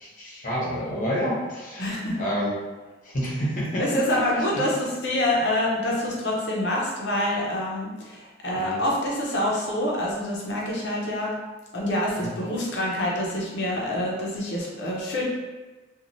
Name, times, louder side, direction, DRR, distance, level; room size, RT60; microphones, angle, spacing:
voice 1, 0.0-2.5 3.0-3.8 4.3-4.6 8.5-8.8 12.2-12.3, equal, 45° left, -6 dB, 1.0 m, -29 dB
voice 2, 1.8-2.2 3.8-11.3 11.7-15.2, left 1 dB, 70° left, -3 dB, 0.7 m, -26 dB
3.0 x 2.4 x 2.6 m, 1.2 s
head